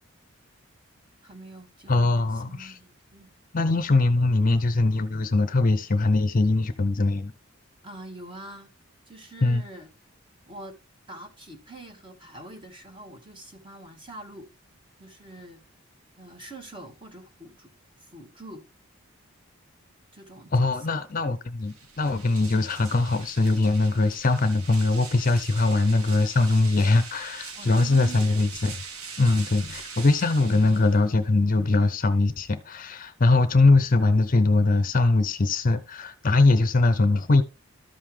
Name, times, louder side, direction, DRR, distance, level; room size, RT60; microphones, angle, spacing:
voice 1, 1.2-3.3 7.8-8.7 9.1-9.9 10.5-10.8 11.1-14.5 15.0-15.6 16.2-17.7 18.0-18.6 20.1-21.0 27.5-28.6 29.2-29.5, right 2 dB, 25° right, 1.7 m, -44 dB
voice 2, 1.9-2.8 3.5-7.3 9.4-9.6 20.5-28.7 29.2-37.4, left 3 dB, 40° left, 0.5 m, -22 dB
sound 1, 21.6-31.3, right 5 dB, 90° right, 1.3 m, -42 dB
13.0 x 5.5 x 3.2 m
head